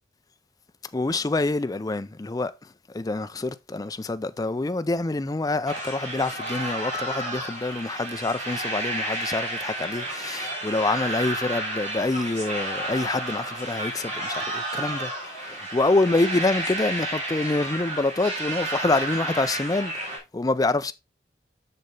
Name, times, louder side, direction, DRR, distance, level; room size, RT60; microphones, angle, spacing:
voice 1, 0.9-2.5 2.9-20.9, left 2 dB, 20° left, 0.4 m, -26 dB
sound 1, 5.7-20.2, right 1 dB, 40° right, 3.6 m, -31 dB
6.7 x 6.6 x 3.3 m
head